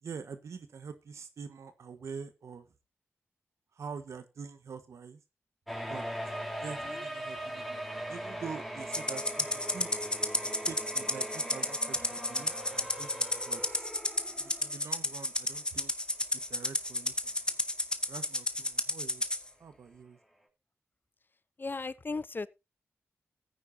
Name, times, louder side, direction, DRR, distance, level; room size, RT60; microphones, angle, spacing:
voice 1, 0.0-2.7 3.7-5.2 5.8-6.1 6.6-9.9 10.6-13.9 14.3-15.9 16.3-17.3 18.1-19.2 19.6-20.2, right 6 dB, 85° right, 1.4 m, -45 dB
sound 1, 5.7-15.0 15.3-15.4 16.2-16.3 16.7-16.8, equal, ahead, 3.7 m, -40 dB
Rattle (instrument), 8.9-19.4, left 1 dB, 20° left, 1.4 m, -32 dB
voice 2, 21.6-22.5, left 3 dB, 45° left, 0.7 m, -36 dB
15.5 x 9.4 x 2.8 m
cardioid pair, 40°, 5 cm